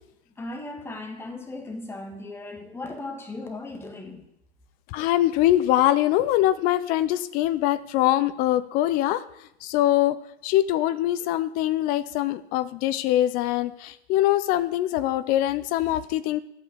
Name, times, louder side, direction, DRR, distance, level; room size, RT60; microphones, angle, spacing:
voice 1, 0.4-4.2, left 2 dB, 5° left, 4 dB, 1.7 m, -37 dB
voice 2, 4.9-9.2 9.6-10.2 10.4-16.4, left 13 dB, 25° left, 15 dB, 0.5 m, -23 dB
12.5 x 8.6 x 6.9 m, 0.79 s
hypercardioid pair, 115°, 34 cm